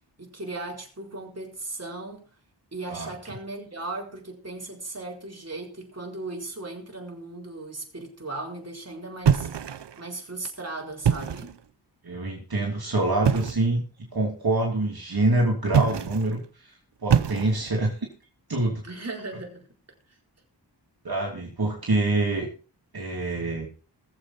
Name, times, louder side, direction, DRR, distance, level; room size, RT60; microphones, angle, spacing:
voice 1, 0.2-2.3 2.7-9.5 10.0-11.6 18.8-19.7, right 2 dB, 35° right, 4.2 m, -37 dB
sound 1, 9.2-10.1 10.9-11.6 13.2-13.7 15.7-16.3 17.1-17.8, right 8 dB, 75° right, 0.8 m, -24 dB
voice 2, 12.0-16.7 17.0-18.0 18.5-18.8 21.0-22.5 22.9-23.7, right 2 dB, 60° right, 3.0 m, -26 dB
20.5 x 7.7 x 4.3 m
wide cardioid pair, 65°, 42 cm